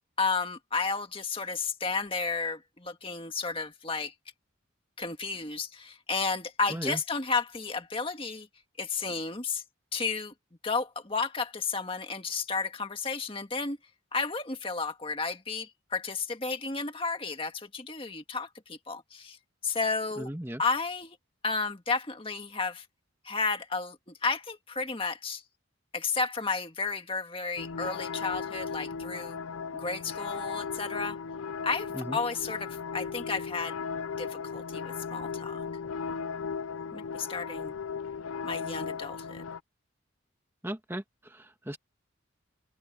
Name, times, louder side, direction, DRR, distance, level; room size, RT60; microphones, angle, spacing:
voice 1, 0.2-4.1 5.0-8.5 8.8-9.6 9.9-10.3 10.6-13.8 14.1-19.4 19.6-20.3 20.6-21.2 21.4-22.9 23.2-25.4 25.9-29.4 29.7-31.2 31.6-33.8 34.2-35.6 36.9-37.7 38.4-39.4, left 4 dB, 25° left, 1.9 m, -32 dB
voice 2, 6.7-7.0 20.2-20.6 31.9-32.2 40.6-41.8, right 1 dB, 10° right, 1.6 m, -36 dB
sound 1, 27.6-39.6, left 5 dB, 85° left, 0.6 m, -36 dB
head